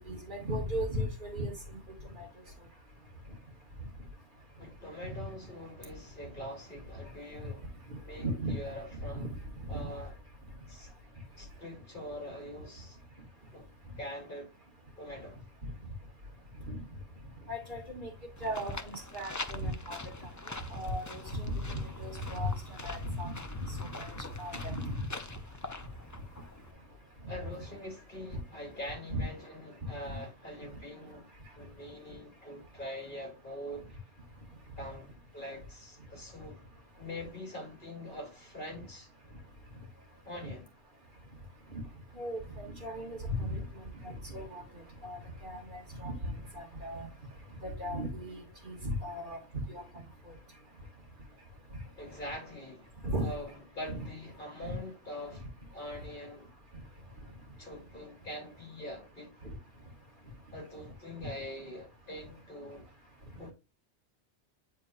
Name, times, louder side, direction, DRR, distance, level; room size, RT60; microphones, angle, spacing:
voice 1, 0.1-1.5 2.2-2.3 8.2-8.5 9.1-9.2 9.7-9.8 16.7-16.8 17.5-18.1 18.4-20.3 20.7-22.6 22.8-24.1 24.4-24.8 29.1-29.2 30.1-30.2 41.7-41.8 42.2-44.6 45.0-46.1 46.5-47.1 47.6-49.4 49.7-49.8 53.0-53.3 53.9-54.0 54.6-54.7, equal, 45° right, 2.3 m, -36 dB
voice 2, 4.6-7.7 8.0-9.3 9.7-10.2 10.7-10.9 11.3-13.0 13.5-13.7 14.0-14.5 15.0-15.4 27.3-31.3 31.5-34.0 34.8-36.6 37.0-39.1 40.2-40.7 52.0-52.9 53.2-56.5 57.6-59.4 60.5-62.9 63.4-63.5, left 1 dB, 50° left, 2.9 m, -44 dB
sound 1, 18.4-26.7, left 2 dB, 20° left, 0.5 m, -43 dB
9.5 x 4.5 x 2.5 m
omnidirectional pair, 1.1 m